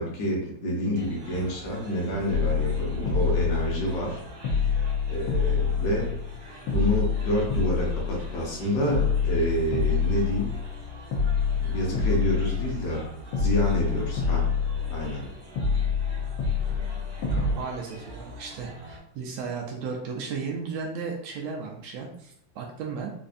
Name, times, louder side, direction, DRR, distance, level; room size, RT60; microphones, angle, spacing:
voice 1, 0.0-4.2 4.5-4.6 5.1-6.1 6.4-10.5 11.6-13.1 13.4-14.4 14.9-15.3, equal, 65° left, -3 dB, 1.8 m, -28 dB
sound 1, 0.9-19.0, right 1 dB, 60° right, 1.3 m, -45 dB
sound 2, 2.3-4.1 4.4-6.4 6.7-8.5 8.9-10.8 11.1-13.0 13.3-15.2 15.6-17.5, left 6 dB, 85° left, 1.2 m, -26 dB
voice 2, 17.3-23.1, right 5 dB, 80° right, -1 dB, 1.5 m, -35 dB
5.1 x 2.6 x 2.5 m, 0.69 s
omnidirectional pair, 3.5 m